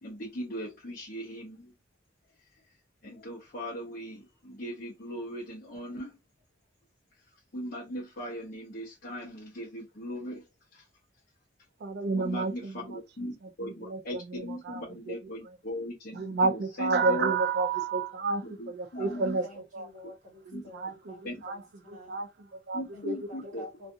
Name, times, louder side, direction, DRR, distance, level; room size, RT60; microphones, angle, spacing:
voice 1, 0.0-1.7 3.0-6.1 7.5-10.4 10.7-10.8 12.1-16.2 16.4-17.3 18.4-19.4 20.5-20.6 21.2-21.3 22.7-23.6, equal, 50° left, 0.8 m, -38 dB
voice 2, 11.8-15.2 16.1-19.4 19.7-19.9 20.5-21.2 21.4-21.6 21.9-23.2 23.4-23.5, right 4 dB, 60° right, 0.4 m, -31 dB
voice 3, 18.9-22.2 22.9-23.9, left 1 dB, 40° right, 1.1 m, -50 dB
2.4 x 2.4 x 2.6 m
head